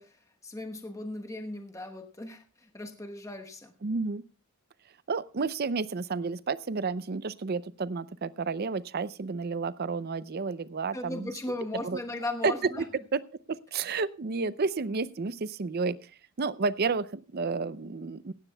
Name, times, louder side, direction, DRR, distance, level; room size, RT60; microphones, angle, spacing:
voice 1, 0.0-3.7 10.9-12.9, left 2 dB, 15° left, 5 dB, 1.0 m, -37 dB
voice 2, 3.8-4.2 5.1-11.3 11.7-12.0 12.4-12.7 13.1-13.2 13.5-16.1 16.4-18.3, right 4 dB, 45° right, 17 dB, 0.5 m, -31 dB
17.0 x 15.5 x 2.2 m, 0.35 s
head